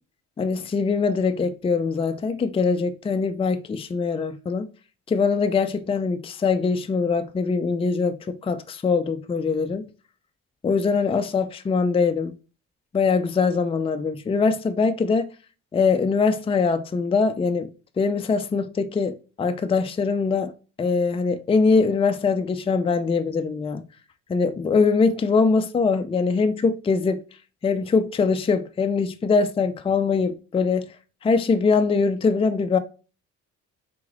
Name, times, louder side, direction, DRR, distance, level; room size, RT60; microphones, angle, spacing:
voice 1, 0.4-4.7 5.1-9.8 10.6-12.3 12.9-15.3 15.7-17.7 18.0-20.5 20.8-23.8 24.3-27.2 27.6-30.9 31.2-32.8, left 4 dB, 20° left, 0.4 m, -22 dB
3.8 x 3.2 x 3.8 m
cardioid pair, 90°, 30 cm